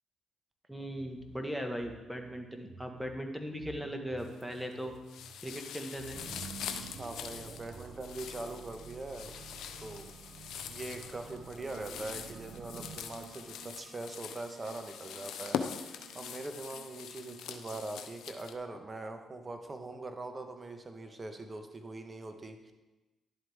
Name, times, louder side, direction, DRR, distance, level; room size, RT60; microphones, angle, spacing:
voice 1, 0.7-4.9 5.4-6.2, equal, ahead, 3 dB, 1.6 m, -38 dB
sound 1, 1.0-7.8, equal, 80° right, 3.3 m, -54 dB
sound 2, 4.2-4.7 5.1-18.5, left 8 dB, 75° left, 0.6 m, -43 dB
sound 3, 6.1-18.0, right 6 dB, 60° right, 0.6 m, -51 dB
voice 2, 7.0-9.3 9.8-10.1 10.7-22.7, right 2 dB, 35° right, 6 dB, 1.3 m, -42 dB
11.0 x 7.8 x 3.6 m, 1.1 s
supercardioid pair, 50°, 0 cm